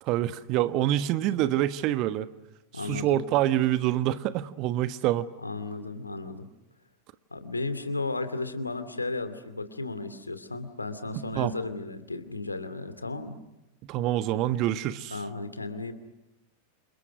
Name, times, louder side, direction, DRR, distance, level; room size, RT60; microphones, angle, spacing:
voice 1, 0.0-2.3 2.8-5.3 11.1-11.5 13.8-15.2, right 13 dB, 40° right, 13 dB, 1.3 m, -26 dB
voice 2, 2.7-3.2 5.4-6.5 7.3-13.4 15.1-15.9, left 3 dB, 80° left, 10 dB, 2.6 m, -34 dB
29.5 x 28.0 x 6.2 m, 0.94 s
figure-of-eight pair, 90°, 0 cm